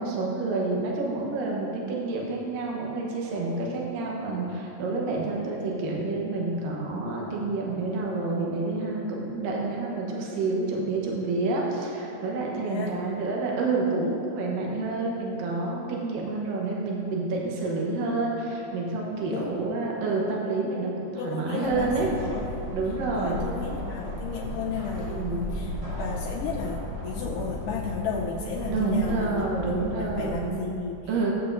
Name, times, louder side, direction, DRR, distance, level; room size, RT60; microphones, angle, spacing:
voice 1, 0.0-22.1 22.7-23.4 25.0-25.5 28.7-30.6 31.1-31.3, right 3 dB, 80° right, -2 dB, 2.8 m, -28 dB
voice 2, 12.6-13.0 19.3-19.6 21.2-22.8 23.2-29.5 30.0-31.1, left 5 dB, 75° left, -6 dB, 2.4 m, -34 dB
sound 1, 21.6-30.5, left 1 dB, 45° right, 0.4 m, -35 dB
16.0 x 8.4 x 2.7 m, 2.9 s
omnidirectional pair, 3.9 m